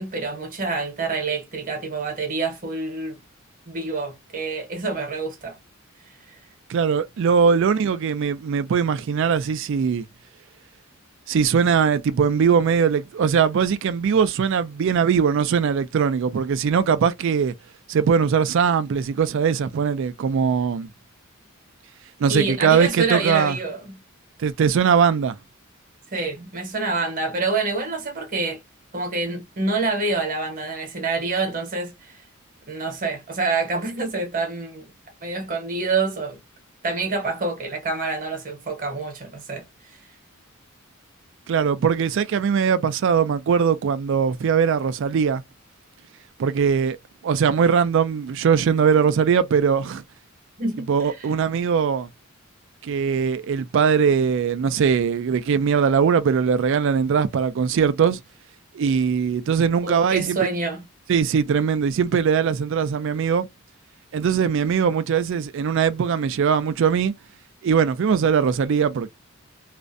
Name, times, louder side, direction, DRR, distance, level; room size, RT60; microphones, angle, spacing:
voice 1, 0.0-3.2 3.7-5.6 6.3-6.4 22.3-24.0 26.1-28.6 28.9-32.2 32.7-34.9 35.2-36.4 36.8-40.0 50.6-51.3 59.8-60.8, right 3 dB, 40° right, 0.9 m, -27 dB
voice 2, 6.7-10.0 11.3-17.5 17.9-20.9 22.2-23.6 24.4-25.4 41.5-45.4 46.4-47.0 47.2-50.0 50.9-52.1 52.8-58.2 58.7-60.4 61.1-63.5 64.1-67.1 67.6-69.1, right 6 dB, 60° right, 0.3 m, -20 dB
2.5 x 2.1 x 2.5 m
head